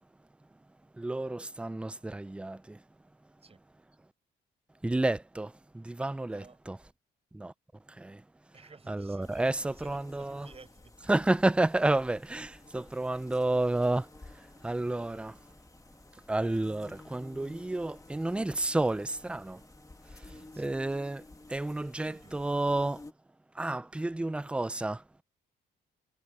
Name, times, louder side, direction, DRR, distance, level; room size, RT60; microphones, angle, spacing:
voice 1, 1.0-2.8 4.8-6.8 7.3-7.5 8.0-8.2 8.9-10.5 11.1-14.1 14.6-15.4 16.3-19.6 20.1-21.2 21.5-23.0 23.6-25.0, right 2 dB, 5° right, 0.4 m, -30 dB
voice 2, 6.3-6.6 8.5-11.1 20.2-20.9 22.0-22.7, right 4 dB, 30° right, 5.0 m, -55 dB
sound 1, 9.2-23.1, left 2 dB, 15° left, 2.0 m, -53 dB
cardioid pair, 90°, 20 cm